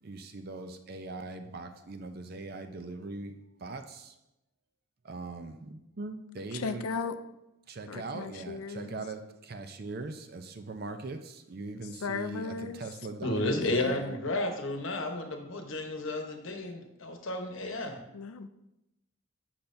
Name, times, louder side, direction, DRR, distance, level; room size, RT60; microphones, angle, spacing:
voice 1, 0.0-3.3 3.6-4.1 5.0-6.9 7.7-13.7, right 3 dB, 45° right, 0.5 m, -41 dB
voice 2, 6.5-7.2 7.9-9.0 12.0-12.8 13.6-14.1 18.1-18.5, left 5 dB, 85° left, 0.4 m, -36 dB
voice 3, 13.2-18.0, left 1 dB, 65° left, 1.0 m, -32 dB
8.6 x 5.7 x 2.6 m
head